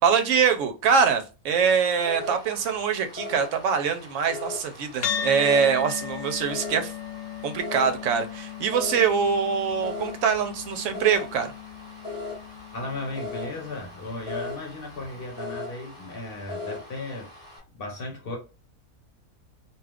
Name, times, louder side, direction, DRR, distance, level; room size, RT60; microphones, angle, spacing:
voice 1, 0.0-6.9 7.4-11.5, right 6 dB, 70° right, 0.9 m, -23 dB
sound 1, 1.6-17.6, left 3 dB, 10° right, 1.0 m, -39 dB
sound 2, 5.0-13.7, left 7 dB, 75° left, 1.1 m, -36 dB
voice 2, 12.7-17.3 17.8-18.4, left 2 dB, 45° left, 1.1 m, -35 dB
2.6 x 2.3 x 3.4 m
omnidirectional pair, 1.5 m